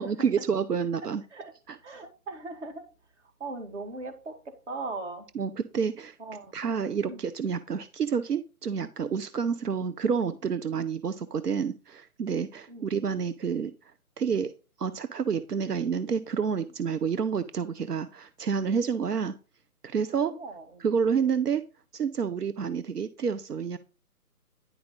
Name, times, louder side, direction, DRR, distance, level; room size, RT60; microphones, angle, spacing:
voice 1, 0.0-1.2 5.4-6.2 6.5-13.7 14.2-14.5 14.8-19.3 19.8-20.3 20.8-21.6 21.9-23.8, right 6 dB, 85° right, 0.7 m, -29 dB
voice 2, 1.8-5.3 6.2-6.6 7.0-7.3 12.7-13.1 20.3-20.9, right 3 dB, 50° right, 2.1 m, -40 dB
10.0 x 4.8 x 3.7 m
figure-of-eight pair, 145°, 46 cm